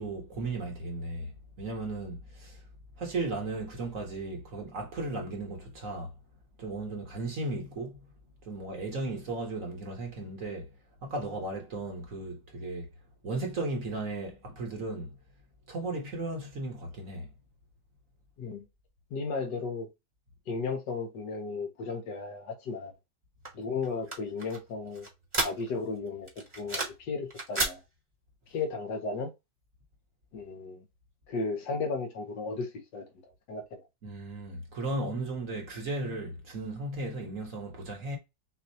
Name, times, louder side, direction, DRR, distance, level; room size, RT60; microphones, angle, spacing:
voice 1, 0.0-2.6 3.0-6.1 6.6-8.0 8.4-10.7 11.0-12.9 13.2-15.2 15.7-17.3 34.0-38.2, right 2 dB, 50° right, 1.5 m, -35 dB
voice 2, 19.1-19.9 20.5-22.9 23.5-25.1 25.4-27.8 28.5-29.3 30.3-30.8 31.3-33.0 33.5-33.8, left 4 dB, 70° left, 1.6 m, -34 dB
sound 1, 23.4-25.9 26.3-27.1 27.3-27.8, right 2 dB, 20° right, 1.2 m, -33 dB
6.4 x 2.4 x 2.8 m
omnidirectional pair, 2.0 m